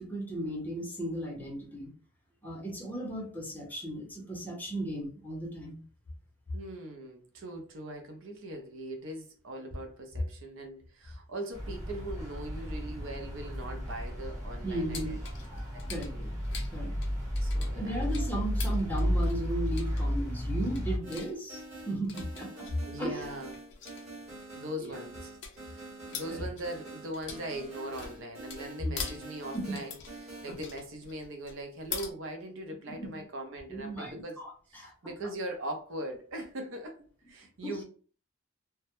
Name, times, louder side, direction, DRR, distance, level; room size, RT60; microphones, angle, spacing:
voice 1, 0.0-1.9 2.4-5.8 14.6-15.2 15.9-16.1 16.7-16.9 17.7-22.7 23.0-23.3 24.8-24.9 26.0-26.5 28.8-28.9 29.5-29.8 30.5-30.6 32.9-33.1 33.7-34.9 37.6-37.8, right 1 dB, 10° left, 0.6 m, -36 dB
voice 2, 6.5-15.2 15.7-15.9 16.1-16.3 17.4-18.0 22.9-23.5 24.5-25.3 25.6-25.9 26.1-34.4 34.7-37.0 37.3-37.8, right 1 dB, 65° right, 0.5 m, -40 dB
sound 1, 11.5-21.0, equal, 15° right, 1.0 m, -33 dB
sound 2, 14.9-32.1, left 6 dB, 60° left, 0.5 m, -45 dB
sound 3, 21.0-30.6, right 2 dB, 35° right, 1.1 m, -46 dB
2.2 x 2.0 x 2.8 m
head